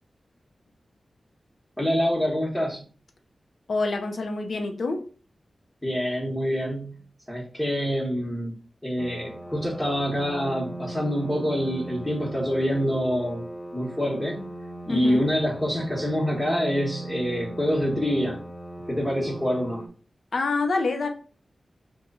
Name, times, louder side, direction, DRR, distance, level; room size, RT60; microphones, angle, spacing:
voice 1, 1.8-2.8 5.8-7.0 7.3-8.5 8.8-13.4 13.7-14.4 14.8-18.4 18.9-19.8, equal, 10° left, -5 dB, 1.0 m, -26 dB
voice 2, 3.7-5.1 14.9-15.3 20.3-21.1, left 3 dB, 75° left, 5 dB, 0.5 m, -26 dB
sound 1, 9.0-19.9, right 1 dB, 25° left, 0.5 m, -39 dB
3.0 x 2.2 x 3.7 m, 0.38 s
cardioid pair, 65°, 0 cm